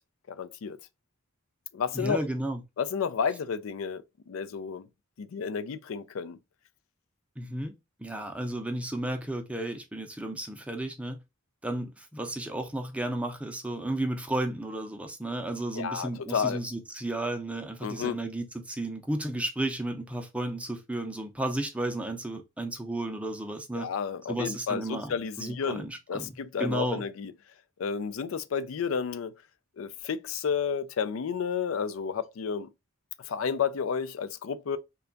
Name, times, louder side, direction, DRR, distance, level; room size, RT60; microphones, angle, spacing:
voice 1, 0.3-0.8 1.7-2.2 2.8-4.9 5.2-6.4 15.7-16.6 17.8-18.2 23.7-27.3 27.8-29.3 29.8-32.7 33.2-34.8, left 6 dB, 80° left, 0.4 m, -31 dB
voice 2, 1.9-2.6 7.4-7.7 8.0-11.2 11.6-23.9 24.3-25.1 25.4-27.0, right 1 dB, 5° right, 0.5 m, -33 dB
3.3 x 2.3 x 3.8 m
head